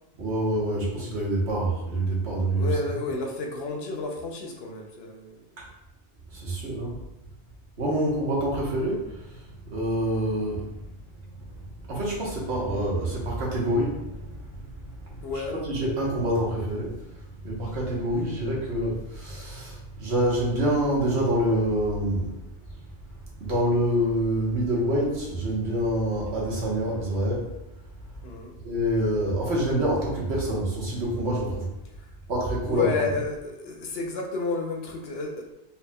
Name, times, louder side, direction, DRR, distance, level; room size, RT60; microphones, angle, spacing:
voice 1, 0.2-2.7 6.3-7.0 7.8-9.1 9.7-10.7 11.9-14.6 15.7-16.9 17.4-22.3 23.4-27.5 28.6-31.7 32.3-32.9, right 1 dB, 85° right, -4 dB, 1.3 m, -26 dB
voice 2, 2.6-5.4 15.2-15.6 28.2-28.5 32.6-35.5, left 4 dB, 70° left, 1 dB, 0.8 m, -31 dB
4.2 x 3.2 x 2.2 m, 0.91 s
omnidirectional pair, 1.1 m